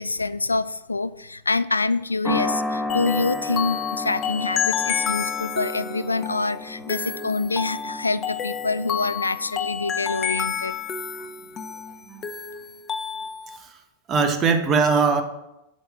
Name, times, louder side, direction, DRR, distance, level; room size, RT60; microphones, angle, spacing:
voice 1, 0.0-10.8, left 3 dB, 80° left, 16 dB, 0.3 m, -26 dB
sound 1, 2.2-10.8, left 2 dB, 5° left, 2.0 m, -33 dB
sound 2, 2.9-13.6, left 8 dB, 25° left, 0.9 m, -30 dB
voice 2, 14.1-15.2, right 5 dB, 25° right, 7 dB, 1.3 m, -21 dB
8.3 x 6.5 x 7.4 m, 0.92 s
figure-of-eight pair, 90°, 0 cm